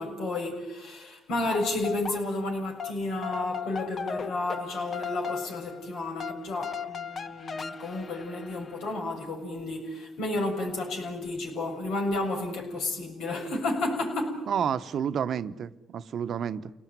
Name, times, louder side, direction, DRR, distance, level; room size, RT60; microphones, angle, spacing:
voice 1, 0.0-14.5, left 2 dB, 85° left, 7.3 m, -32 dB
sound 1, 1.3-2.5 2.8-8.9, left 6 dB, 50° left, 1.4 m, -38 dB
voice 2, 14.5-16.7, right 8 dB, 65° right, 1.0 m, -30 dB
29.0 x 19.0 x 9.5 m
cardioid pair, 90°, 0 cm